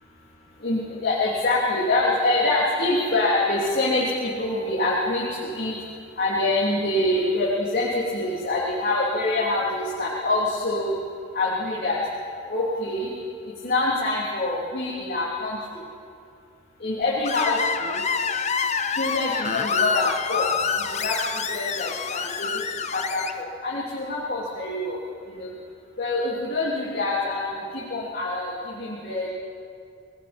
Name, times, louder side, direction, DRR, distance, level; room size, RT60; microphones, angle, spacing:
voice 1, 0.6-5.8 6.2-10.9 11.3-12.0 12.5-13.1 13.6-15.6 16.8-18.0 18.9-20.5 21.0-22.6 22.9-25.0 25.3-25.5 26.0-29.3, left 2 dB, 50° left, -6 dB, 3.2 m, -25 dB
Screech, 17.2-23.3, left 5 dB, 35° left, 0.8 m, -26 dB
29.5 x 20.0 x 4.5 m, 2.4 s
head